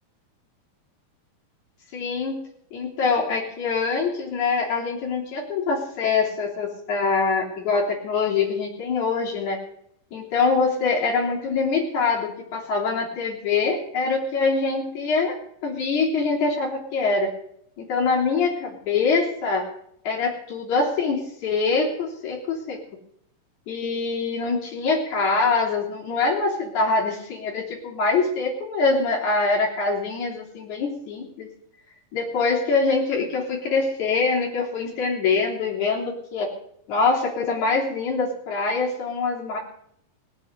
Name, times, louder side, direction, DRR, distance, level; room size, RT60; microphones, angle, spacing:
voice 1, 1.9-2.4 2.7-9.6 10.1-17.3 17.8-19.7 20.0-22.8 23.7-31.5 32.1-36.5 36.9-39.6, left 4 dB, 60° left, -2 dB, 4.5 m, -24 dB
18.0 x 7.9 x 7.9 m, 0.69 s
omnidirectional pair, 4.0 m